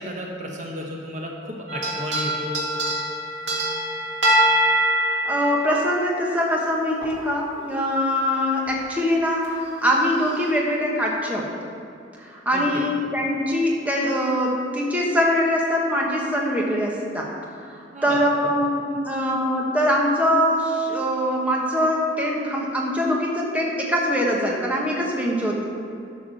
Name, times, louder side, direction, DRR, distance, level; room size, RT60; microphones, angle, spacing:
voice 1, 0.0-2.7 12.5-12.9 17.9-18.3, equal, 40° right, 0 dB, 1.0 m, -33 dB
sound 1, 1.7-6.5 7.0-7.1 8.7-8.8 9.4-9.5 10.2-10.5, right 1 dB, 75° right, 2.0 m, -24 dB
voice 2, 4.9-11.5 12.2-17.3 17.7-25.6, equal, 10° right, -2 dB, 1.3 m, -23 dB
11.0 x 5.9 x 6.3 m, 2.5 s
head